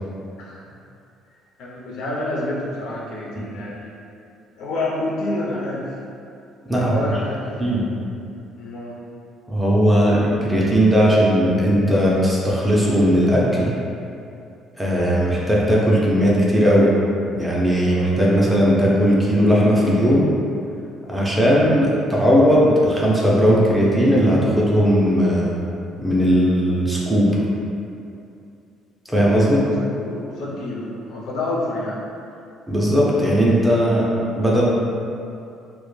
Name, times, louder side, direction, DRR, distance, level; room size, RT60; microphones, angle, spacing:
voice 1, 0.4-0.7 1.6-3.9 4.6-6.0 6.7-7.8 8.6-9.0 29.6-32.0, left 1 dB, 70° left, -4 dB, 0.5 m, -28 dB
voice 2, 9.5-13.7 14.8-16.9 17.3-20.3 21.1-25.5 26.0-27.3 29.1-29.6 32.7-34.1 34.4-34.6, equal, 5° right, -6 dB, 0.3 m, -17 dB
2.1 x 2.0 x 3.0 m, 2.6 s
cardioid pair, 155°, 0 cm